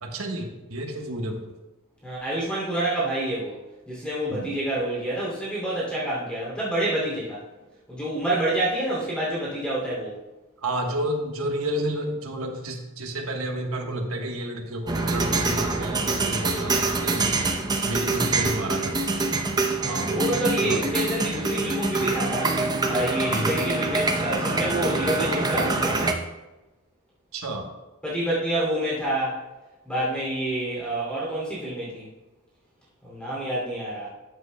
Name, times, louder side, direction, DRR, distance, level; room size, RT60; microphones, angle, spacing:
voice 1, 0.0-1.4 4.3-4.5 10.6-17.3 17.8-19.3 19.9-20.3 20.6-20.8 23.3-23.5 27.3-27.7, right 1 dB, 70° right, 3 dB, 1.2 m, -31 dB
voice 2, 2.0-3.6 3.9-7.4 7.9-10.2 18.1-18.2 19.8-22.6 22.9-26.1 28.0-29.4 29.8-32.1 33.0-34.1, right 1 dB, 5° left, -7 dB, 2.6 m, -28 dB
sound 1, 14.9-26.1, right 3 dB, 20° right, 0.6 m, -25 dB
13.5 x 7.8 x 2.2 m, 1.1 s
head